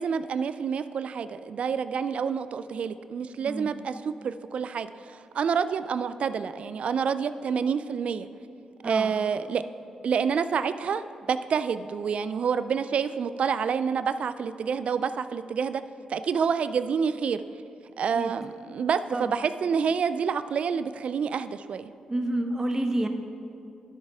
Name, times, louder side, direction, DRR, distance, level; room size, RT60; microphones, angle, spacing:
voice 1, 0.0-8.3 8.8-9.6 10.0-15.8 16.1-17.4 18.0-21.9, right 6 dB, 65° right, 12 dB, 0.3 m, -28 dB
voice 2, 8.8-9.1 18.1-18.4 19.1-19.3 22.1-23.1, right 1 dB, 25° right, 5 dB, 1.0 m, -29 dB
12.5 x 6.6 x 3.5 m, 2.7 s
cardioid pair, 60°, 2 cm